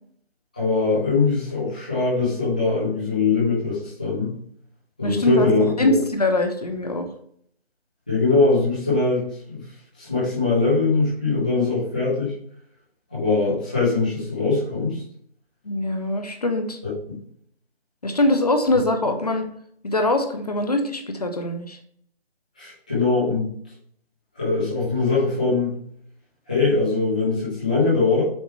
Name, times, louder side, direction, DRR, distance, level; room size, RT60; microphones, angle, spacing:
voice 1, 0.5-4.3 5.0-5.9 8.1-9.6 10.0-12.3 13.1-15.0 16.8-16.9 22.6-23.5 24.4-25.7 26.5-28.2, left 3 dB, 10° left, -10 dB, 0.7 m, -22 dB
voice 2, 5.0-5.5 5.8-7.1 15.7-16.8 18.0-19.5 19.8-21.8, left 2 dB, 40° left, 5 dB, 0.8 m, -22 dB
7.2 x 4.9 x 3.2 m, 0.64 s
figure-of-eight pair, 160°, 32 cm